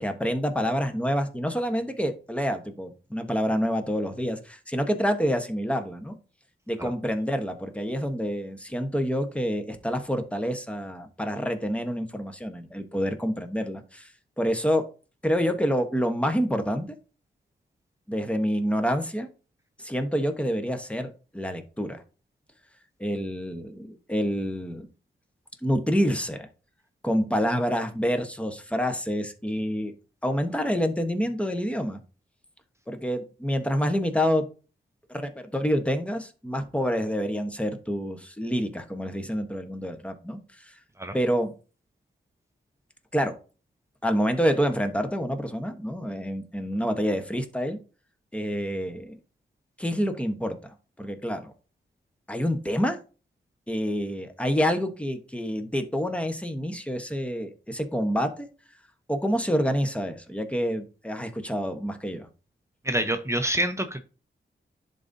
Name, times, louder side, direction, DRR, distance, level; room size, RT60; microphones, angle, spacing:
voice 1, 0.0-6.1 6.7-14.1 14.4-14.9 15.2-17.0 18.1-19.3 19.8-22.0 23.0-24.9 25.6-26.5 27.0-29.9 30.2-32.0 32.9-34.4 35.1-40.8 41.1-41.5 43.1-43.4 44.0-47.8 48.3-49.2 49.8-51.5 52.3-53.0 53.7-58.5 59.1-62.3, equal, 5° left, 6 dB, 1.0 m, -27 dB
voice 2, 62.8-64.0, right 1 dB, 15° right, 7 dB, 0.7 m, -26 dB
10.5 x 4.0 x 2.7 m, 0.35 s
wide cardioid pair, 85°, 19 cm